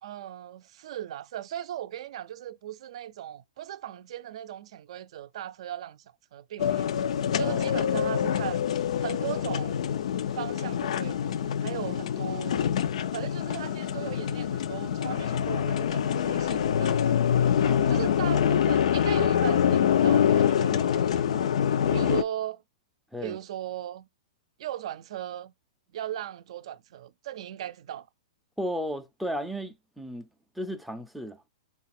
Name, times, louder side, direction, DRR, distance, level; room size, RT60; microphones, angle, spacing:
voice 1, 0.0-6.9 7.3-8.7 9.0-9.8 10.3-12.6 13.1-17.1 17.9-21.4 21.9-22.6 23.2-24.1 24.6-25.5 25.9-28.1, right 11 dB, 60° right, 0.4 m, -38 dB
sound 1, 6.6-22.2, left 9 dB, 70° left, 0.4 m, -25 dB
voice 2, 17.6-18.1 23.1-23.4 28.6-30.3 30.6-31.4, equal, ahead, 0.4 m, -34 dB
3.8 x 2.4 x 4.2 m
hypercardioid pair, 150°, 4 cm